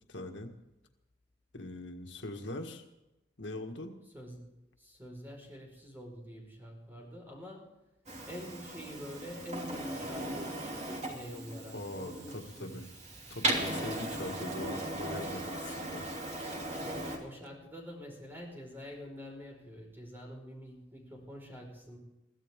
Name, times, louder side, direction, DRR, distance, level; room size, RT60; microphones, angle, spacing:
voice 1, 0.1-0.5 1.5-2.9 3.4-3.9 11.7-12.9 13.3-16.0, left 1 dB, 90° left, 4 dB, 1.8 m, -41 dB
voice 2, 4.1-7.7 8.3-12.9 17.2-22.0, equal, 10° right, 0 dB, 5.0 m, -46 dB
Printer, 8.1-17.2, right 1 dB, 40° right, 3.0 m, -37 dB
22.5 x 15.0 x 3.7 m, 0.95 s
head